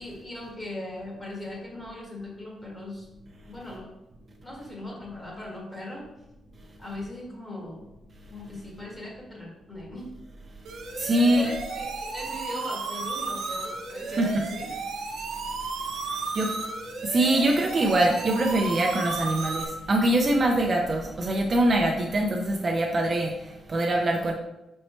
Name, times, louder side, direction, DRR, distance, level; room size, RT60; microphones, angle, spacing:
voice 1, 0.0-3.1 3.5-3.9 4.4-6.0 6.8-7.9 8.3-10.2 11.2-14.7, left 1 dB, 15° left, -3 dB, 1.7 m, -39 dB
sound 1, 10.7-19.7, right 4 dB, 80° right, 1.0 m, -33 dB
voice 2, 11.0-11.5 14.1-14.4 16.3-16.5 17.0-24.3, right 1 dB, 30° right, 0 dB, 0.5 m, -23 dB
5.4 x 4.3 x 4.4 m, 0.97 s
wide cardioid pair, 170°, 0 cm